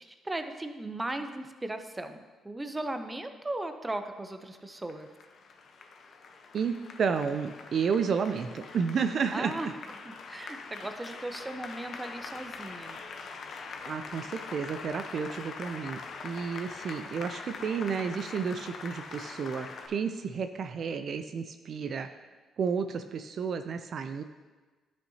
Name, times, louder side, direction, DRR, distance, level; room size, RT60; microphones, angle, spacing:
voice 1, 0.0-5.1 9.3-9.7 10.0-13.0, right 2 dB, 15° right, 7 dB, 0.6 m, -37 dB
Applause, 4.5-19.9, left 4 dB, 60° left, 0.8 m, -43 dB
voice 2, 6.5-9.5 13.8-22.1 22.6-24.2, right 6 dB, 55° right, 8 dB, 0.4 m, -31 dB
11.0 x 6.4 x 2.8 m, 1.3 s
cardioid pair, 90°, 0 cm